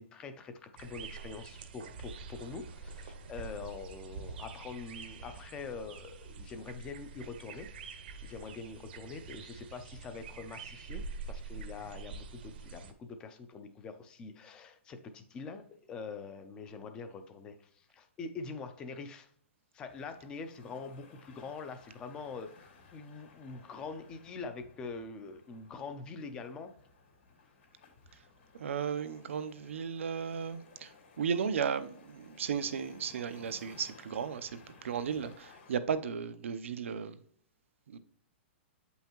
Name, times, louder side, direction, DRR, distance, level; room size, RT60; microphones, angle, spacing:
voice 1, 0.0-7.7 8.2-19.3 19.7-26.7, left 4 dB, 10° left, 0.4 m, -44 dB
sound 1, 0.8-12.9, right 4 dB, 50° right, 0.8 m, -46 dB
sound 2, 19.9-35.8, left 4 dB, 75° left, 2.9 m, -59 dB
voice 2, 28.5-37.2 37.9-38.0, right 7 dB, 90° right, 0.7 m, -35 dB
8.3 x 5.5 x 3.0 m
hypercardioid pair, 175°, 7 cm